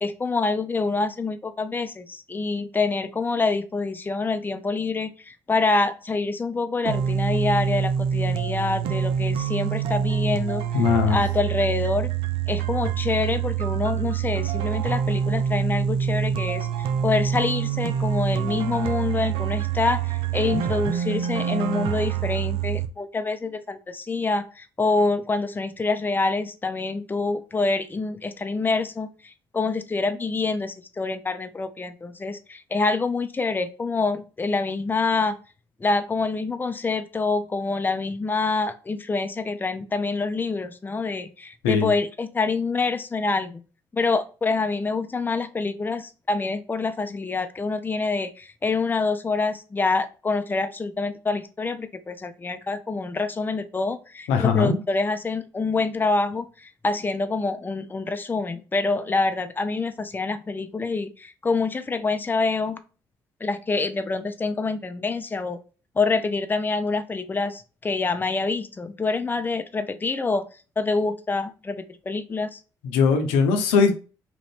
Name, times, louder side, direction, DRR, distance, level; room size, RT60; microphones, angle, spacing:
voice 1, 0.0-12.1 12.5-35.4 35.8-43.6 43.9-62.8 63.4-65.6 66.0-70.4 70.8-72.6, left 3 dB, 20° left, 0.5 m, -26 dB
sound 1, 6.8-22.9, right 8 dB, 75° right, 0.4 m, -26 dB
voice 2, 10.7-11.2 41.6-41.9 54.3-54.8 72.8-73.9, left 5 dB, 90° left, 0.5 m, -20 dB
3.0 x 2.5 x 3.3 m
supercardioid pair, 55°, 9 cm